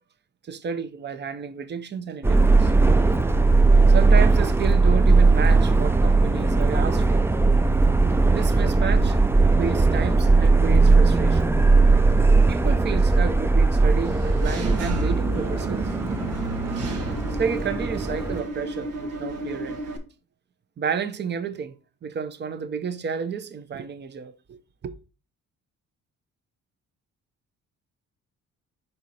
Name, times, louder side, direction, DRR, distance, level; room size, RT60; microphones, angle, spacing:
voice 1, 0.4-2.7 3.9-7.3 8.3-9.2 9.5-11.5 12.5-15.9 17.3-19.8 20.8-21.8 22.0-24.9, right 7 dB, 35° right, 0.7 m, -31 dB
Subway metro underground, 2.2-18.4, right 3 dB, 10° right, 0.4 m, -19 dB
Engine / Mechanisms, 14.0-20.0, right 3 dB, 85° right, 1.3 m, -31 dB
5.3 x 4.5 x 4.1 m
cardioid pair, 90°, 30 cm